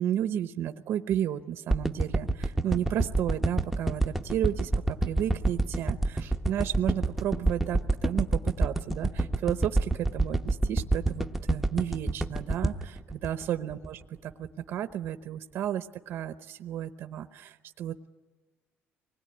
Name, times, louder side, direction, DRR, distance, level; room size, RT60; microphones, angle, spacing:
voice 1, 0.0-18.1, right 10 dB, 60° right, 9 dB, 0.8 m, -33 dB
sound 1, 1.7-14.0 14.4-14.5, right 2 dB, ahead, 0.8 m, -27 dB
25.0 x 20.0 x 9.9 m, 1.4 s
cardioid pair, 170°, 5 cm